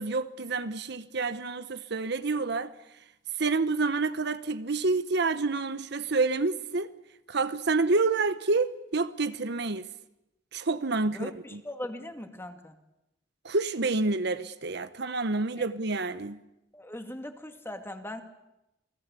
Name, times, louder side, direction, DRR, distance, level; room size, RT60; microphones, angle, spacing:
voice 1, 0.0-2.7 3.4-6.9 7.3-9.9 10.5-11.6 13.4-16.4, right 3 dB, 65° right, 1.0 m, -28 dB
voice 2, 11.1-12.7 15.6-15.7 16.7-18.2, left 1 dB, 15° left, 2.4 m, -40 dB
29.0 x 20.5 x 8.4 m
head